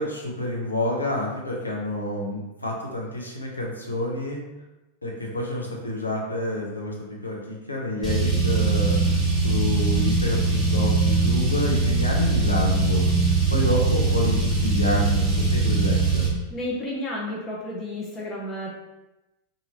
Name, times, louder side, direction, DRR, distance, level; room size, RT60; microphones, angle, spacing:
voice 1, 0.0-4.4 5.0-16.3, left 1 dB, 80° left, -3 dB, 0.7 m, -29 dB
Car, 8.0-16.3, right 3 dB, 10° right, 0.9 m, -21 dB
voice 2, 16.5-18.7, left 1 dB, 20° left, -4 dB, 0.6 m, -31 dB
2.7 x 2.7 x 2.8 m, 1.0 s
figure-of-eight pair, 90°, 0 cm